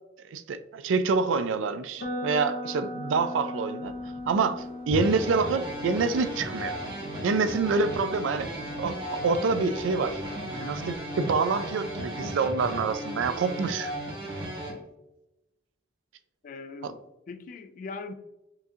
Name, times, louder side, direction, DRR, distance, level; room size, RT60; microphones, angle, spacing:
voice 1, 0.3-3.9 4.3-6.8 7.2-8.5 8.8-10.2 10.5-13.9 16.8-16.9, right 4 dB, 85° right, 11 dB, 0.3 m, -27 dB
sound 1, 2.0-9.9, left 1 dB, 80° left, 0.9 m, -40 dB
sound 2, 3.8-10.9, equal, 10° right, 1.2 m, -50 dB
sound 3, 4.9-14.7, equal, 25° right, 1.2 m, -35 dB
voice 2, 16.4-18.1, left 4 dB, 45° left, 11 dB, 0.3 m, -41 dB
5.7 x 2.7 x 2.4 m, 0.96 s
head